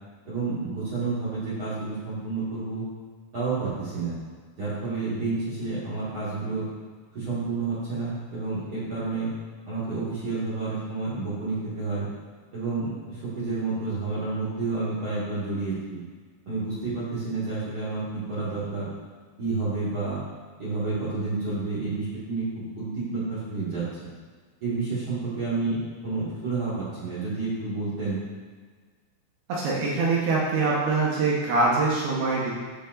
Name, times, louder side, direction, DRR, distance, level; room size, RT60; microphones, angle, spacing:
voice 1, 0.2-2.8 3.3-4.1 4.6-6.7 7.1-9.3 9.6-12.1 12.5-16.0 16.4-18.9 19.4-20.2 20.6-23.8 24.6-28.2, right 3 dB, 50° right, -11 dB, 1.5 m, -30 dB
voice 2, 29.5-32.5, right 3 dB, 70° right, -5 dB, 2.7 m, -24 dB
13.5 x 5.3 x 2.5 m, 1.5 s
omnidirectional pair, 5.4 m